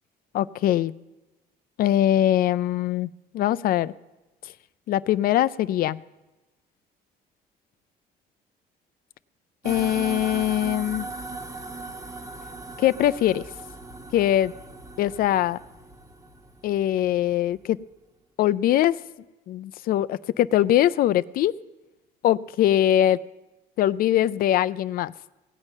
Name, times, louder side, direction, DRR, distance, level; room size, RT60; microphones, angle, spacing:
voice 1, 0.3-0.9 1.8-3.9 4.9-6.0 9.6-11.1 12.8-13.4 14.1-14.5 15.0-15.6 16.6-17.8 18.4-18.9 19.5-21.5 22.2-23.2 23.8-25.1, left 12 dB, 60° left, 16 dB, 0.4 m, -22 dB
sound 1, 9.6-17.3, right 3 dB, 20° right, 1.3 m, -38 dB
17.0 x 9.0 x 5.4 m, 1.1 s
cardioid pair, 110°, 17 cm